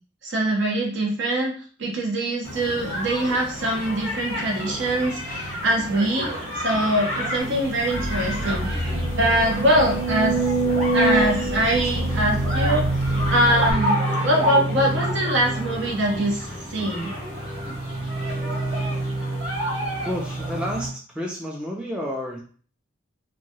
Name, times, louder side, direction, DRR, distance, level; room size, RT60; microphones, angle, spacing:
voice 1, 0.2-6.3 6.6-10.4 10.9-12.9 13.3-17.1, right 1 dB, 60° right, 0 dB, 0.8 m, -23 dB
sound 1, 2.4-20.9, right 1 dB, 30° right, 1.1 m, -28 dB
sound 2, 7.7-7.8 8.2-8.3 8.8-13.0 13.7-13.8, right 3 dB, 75° left, 0.4 m, -26 dB
sound 3, 7.9-13.8, equal, 90° right, 0.6 m, -30 dB
voice 2, 20.0-22.4, equal, 5° right, -1 dB, 0.3 m, -30 dB
2.9 x 2.2 x 2.6 m, 0.41 s
head